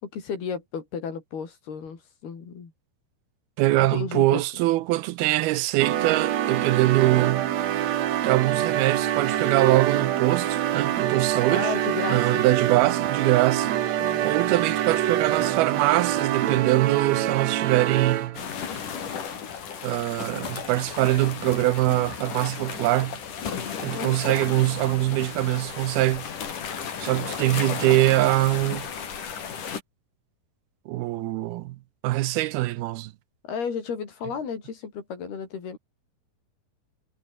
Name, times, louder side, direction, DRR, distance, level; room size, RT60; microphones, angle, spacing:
voice 1, 0.0-2.7 3.8-4.4 11.5-12.4 14.0-14.2 23.5-24.1 33.4-35.8, left 6 dB, 80° left, 6.5 m, -33 dB
voice 2, 3.6-7.5 8.2-11.7 12.1-18.4 19.8-23.2 23.8-26.3 27.0-28.9 30.9-31.8 32.0-33.1, right 17 dB, 80° right, 2.7 m, -23 dB
sound 1, 5.8-18.5, right 11 dB, 60° right, 1.9 m, -25 dB
sound 2, 18.3-29.8, left 7 dB, 55° left, 4.5 m, -34 dB
omnidirectional pair, 4.5 m